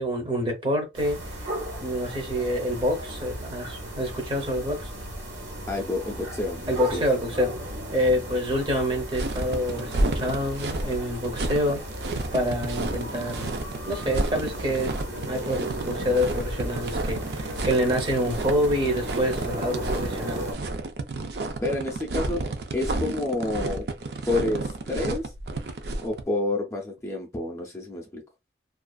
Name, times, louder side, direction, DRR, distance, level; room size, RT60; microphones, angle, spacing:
voice 1, 0.0-1.5 1.8-4.9 6.7-7.5 7.9-11.8 12.3-13.5 13.9-14.9 15.3-20.4, equal, 25° right, 0.7 m, -27 dB
sound 1, 0.9-20.5, right 1 dB, 90° right, 1.3 m, -35 dB
voice 2, 5.7-6.6 6.9-7.0 21.6-22.4 22.7-23.9 24.3-25.3 26.0-28.2, left 2 dB, 15° left, 0.5 m, -29 dB
sound 2, 9.1-26.2, right 2 dB, 70° right, 0.4 m, -31 dB
2.5 x 2.3 x 2.3 m
head